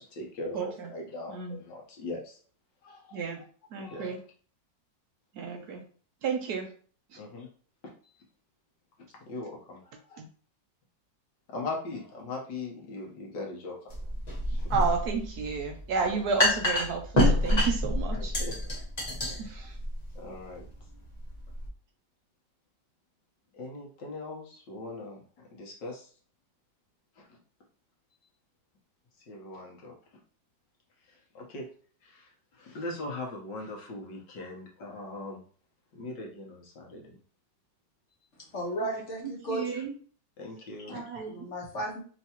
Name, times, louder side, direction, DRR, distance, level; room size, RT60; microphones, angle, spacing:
voice 1, 0.0-2.4 2.8-3.4 3.8-4.2 7.2-7.5 9.2-10.2 11.5-14.0 14.5-14.6 16.1-16.2 18.1-18.6 20.1-20.6 23.5-26.1 27.2-27.3 29.3-29.9 31.1-31.7 32.0-35.4 35.9-37.2 40.4-41.0, left 2 dB, 75° left, 1.7 m, -40 dB
voice 2, 3.7-4.2 5.4-5.8 6.2-6.7 14.7-18.3 19.4-19.7 39.5-39.9 40.9-41.3, right 5 dB, 65° right, 1.1 m, -31 dB
sound 1, 13.9-21.7, left 1 dB, 25° left, 1.1 m, -28 dB
voice 3, 38.5-39.8 41.3-42.0, right 1 dB, 45° left, 1.3 m, -34 dB
4.5 x 3.0 x 2.9 m
omnidirectional pair, 2.0 m